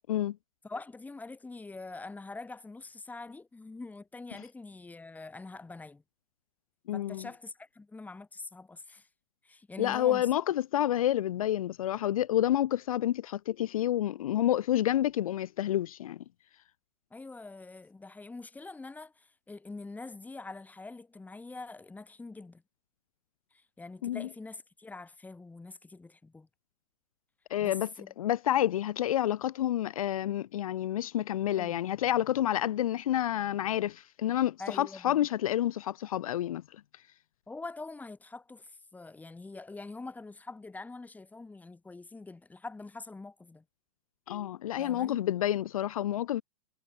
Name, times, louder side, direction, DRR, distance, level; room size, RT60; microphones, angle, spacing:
voice 1, 0.6-6.0 6.9-9.1 9.4-10.3 17.1-22.6 23.5-26.5 27.6-28.1 31.6-31.8 34.6-35.2 37.5-43.6 44.8-45.2, left 3 dB, 10° left, 2.5 m, -44 dB
voice 2, 6.9-7.3 9.8-16.2 24.0-24.3 27.5-27.9 28.2-36.6 44.3-46.4, left 12 dB, 65° left, 0.7 m, -29 dB
hypercardioid pair, 105°, 19 cm